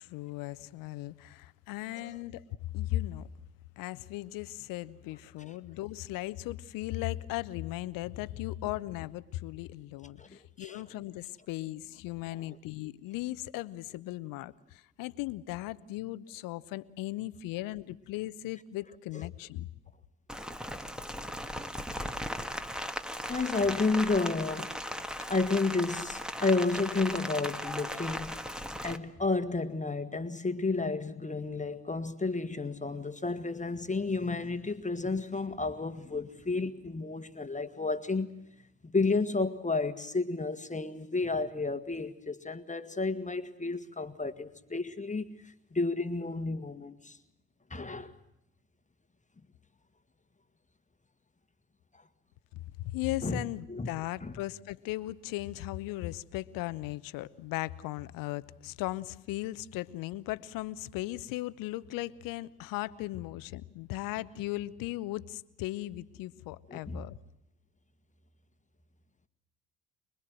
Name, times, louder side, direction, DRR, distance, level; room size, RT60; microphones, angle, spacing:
voice 1, 0.0-2.4 2.7-3.3 3.8-19.7 52.5-67.2, left 16 dB, 70° left, 0.9 m, -37 dB
voice 2, 10.2-10.8 12.4-12.6 19.1-19.2 23.3-24.8 25.3-28.3 28.8-38.4 38.8-47.2 47.7-48.2 53.2-53.4 53.7-53.9 54.2-54.3 66.7-67.0, left 3 dB, 20° left, 1.7 m, -31 dB
Rain, 20.3-29.0, equal, ahead, 1.7 m, -37 dB
25.0 x 21.5 x 7.8 m
hypercardioid pair, 50°, 34 cm